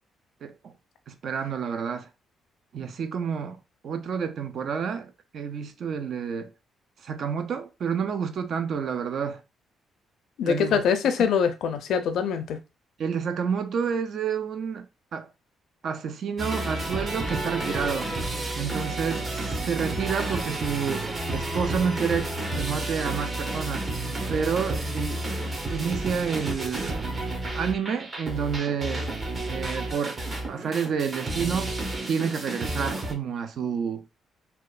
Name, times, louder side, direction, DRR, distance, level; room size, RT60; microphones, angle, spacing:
voice 1, 0.4-0.7 1.1-2.1 2.7-3.6 3.8-6.5 7.0-9.4 10.4-10.8 13.0-14.9 15.1-15.3 15.8-18.1 18.5-23.9 24.3-25.3 25.7-27.1 27.5-29.1 29.5-30.2 30.5-31.8 32.1-34.0, right 6 dB, 60° right, 0.4 m, -29 dB
voice 2, 10.4-12.6, left 7 dB, 75° left, 0.4 m, -24 dB
sound 1, 16.4-33.1, right 2 dB, 30° right, 0.8 m, -31 dB
2.9 x 2.2 x 2.3 m
cardioid pair, 90°, 0 cm